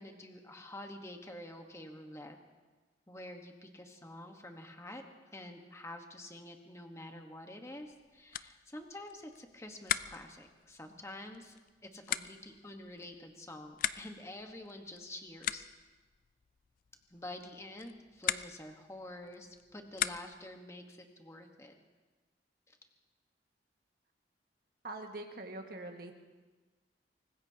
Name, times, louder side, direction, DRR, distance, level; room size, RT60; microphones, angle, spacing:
voice 1, 0.0-2.4 3.1-11.6 11.8-15.7 17.1-21.7 22.7-22.8, left 1 dB, 15° left, 4 dB, 1.2 m, -48 dB
sound 1, 7.8-20.6, left 10 dB, 50° left, 0.4 m, -41 dB
voice 2, 24.8-26.1, right 2 dB, 55° right, 3 dB, 1.6 m, -43 dB
24.5 x 19.5 x 2.8 m, 1.3 s
head